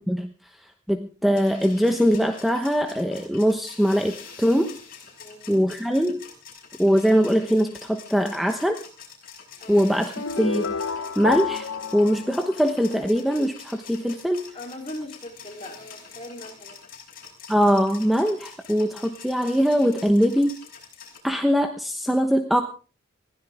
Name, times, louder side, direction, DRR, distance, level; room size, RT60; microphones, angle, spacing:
voice 1, 0.9-4.8 5.5-6.2 6.8-8.8 9.7-10.7 11.2-14.4 17.5-20.5 21.2-22.6, equal, ahead, 5 dB, 1.0 m, -22 dB
sound 1, 1.3-21.2, left 6 dB, 45° left, 5.6 m, -45 dB
voice 2, 5.2-5.7 9.6-9.9 14.5-16.8, left 1 dB, 30° left, 3 dB, 3.6 m, -39 dB
sound 2, 10.2-13.2, left 5 dB, 70° left, 1.0 m, -29 dB
21.0 x 15.5 x 3.6 m, 0.36 s
head